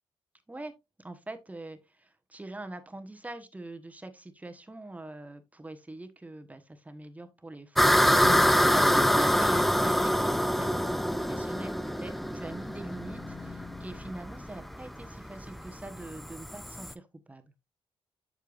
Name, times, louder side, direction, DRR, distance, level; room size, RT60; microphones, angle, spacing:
voice 1, 1.0-17.4, right 2 dB, 15° right, 1.2 m, -43 dB
sound 1, 7.8-16.9, equal, ahead, 0.5 m, -25 dB
sound 2, 8.2-8.8 11.6-15.1, left 7 dB, 55° left, 3.0 m, -45 dB
8.2 x 6.7 x 2.5 m
cardioid pair, 85°, 10 cm